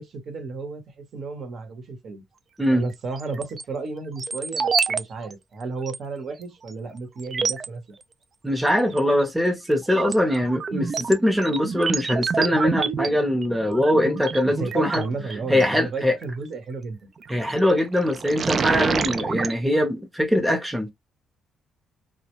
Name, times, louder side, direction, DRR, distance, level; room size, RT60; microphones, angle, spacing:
voice 1, 0.0-2.2 2.7-8.0 13.0-13.1 14.6-17.1, right 4 dB, 60° right, 1.0 m, -33 dB
sound 1, 3.2-3.6 4.2-5.0 5.3-5.4 5.8-6.0 6.7-6.8 7.2-7.7 8.9-9.3 9.7-15.6 17.2-17.6 18.0-19.5, right 5 dB, 45° right, 0.3 m, -28 dB
voice 2, 8.4-15.0 15.5-16.2 17.3-20.9, left 1 dB, 5° right, 0.7 m, -22 dB
2.2 x 2.1 x 2.9 m
cardioid pair, 90°, 0 cm